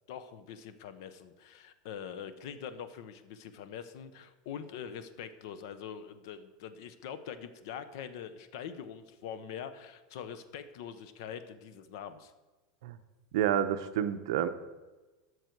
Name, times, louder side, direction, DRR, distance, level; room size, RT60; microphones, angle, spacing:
voice 1, 0.1-12.3, left 8 dB, 55° left, 12 dB, 0.8 m, -44 dB
voice 2, 13.3-14.5, right 10 dB, 65° right, 10 dB, 0.7 m, -29 dB
13.0 x 6.2 x 4.6 m, 1.2 s
supercardioid pair, 180°, 3 cm